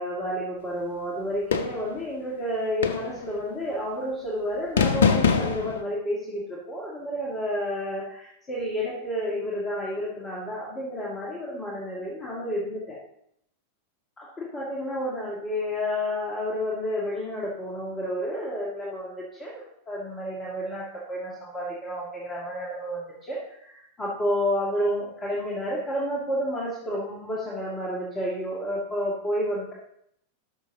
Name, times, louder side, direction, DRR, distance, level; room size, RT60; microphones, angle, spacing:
voice 1, 0.0-13.0 14.2-29.7, equal, 20° left, -5 dB, 1.9 m, -30 dB
sound 1, 1.5-2.0 2.8-3.3 4.8-5.8, left 6 dB, 65° left, 0.6 m, -23 dB
13.0 x 6.3 x 2.8 m, 0.74 s
figure-of-eight pair, 90°, 0 cm